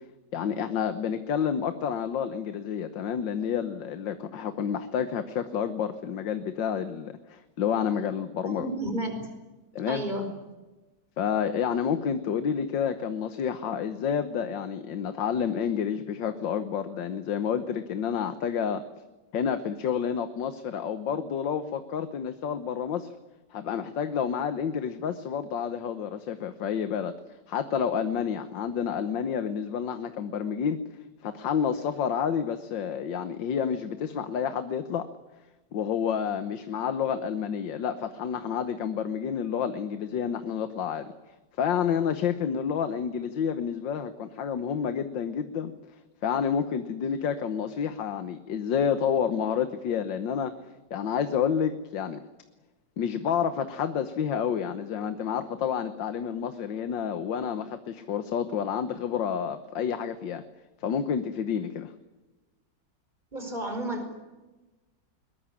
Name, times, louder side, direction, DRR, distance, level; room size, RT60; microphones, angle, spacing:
voice 1, 0.3-8.7 9.7-10.0 11.2-18.8 19.3-23.1 23.5-27.1 27.5-30.8 31.2-35.1 35.7-41.1 41.6-45.7 46.2-50.5 50.9-52.2 53.0-60.4 60.8-61.9, left 7 dB, 75° left, 10 dB, 1.8 m, -29 dB
voice 2, 8.4-9.3 9.8-10.3 63.3-64.1, right 1 dB, 25° right, 6 dB, 5.1 m, -32 dB
22.0 x 20.5 x 9.8 m, 1.2 s
omnidirectional pair, 2.0 m